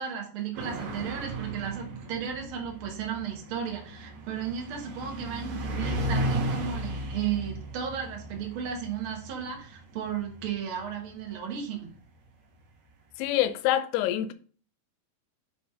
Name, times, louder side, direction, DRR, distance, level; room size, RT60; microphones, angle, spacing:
voice 1, 0.0-11.9, right 8 dB, 90° right, 1.1 m, -34 dB
sound 1, 0.5-11.5, right 1 dB, 75° right, 1.6 m, -35 dB
voice 2, 13.2-14.3, left 13 dB, 85° left, 2.6 m, -26 dB
7.2 x 3.0 x 4.8 m
omnidirectional pair, 4.6 m